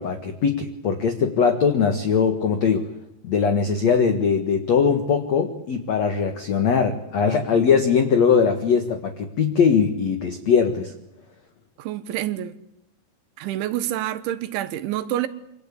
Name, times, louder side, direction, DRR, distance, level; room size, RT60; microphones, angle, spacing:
voice 1, 0.0-2.9 3.2-10.9, left 6 dB, 55° left, 2.0 m, -21 dB
voice 2, 11.8-12.6 13.4-15.3, right 12 dB, 85° right, 3.6 m, -27 dB
26.5 x 25.5 x 8.6 m
omnidirectional pair, 5.3 m